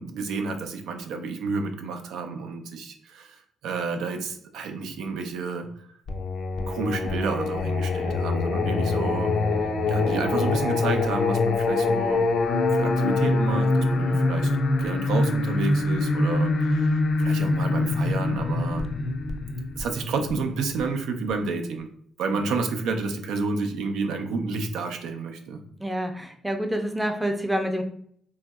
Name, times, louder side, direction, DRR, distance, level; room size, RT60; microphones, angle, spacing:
voice 1, 0.0-3.4 3.6-5.7 6.6-9.3 9.9-12.2 12.7-14.5 14.8-18.8 19.8-21.9 22.2-25.6, right 4 dB, 85° right, 5 dB, 0.4 m, -30 dB
Singing, 6.1-20.8, left 3 dB, 55° left, 0.4 m, -24 dB
voice 2, 25.8-27.8, equal, 5° right, 4 dB, 0.5 m, -27 dB
3.0 x 2.6 x 2.3 m, 0.64 s
cardioid pair, 90°, 0 cm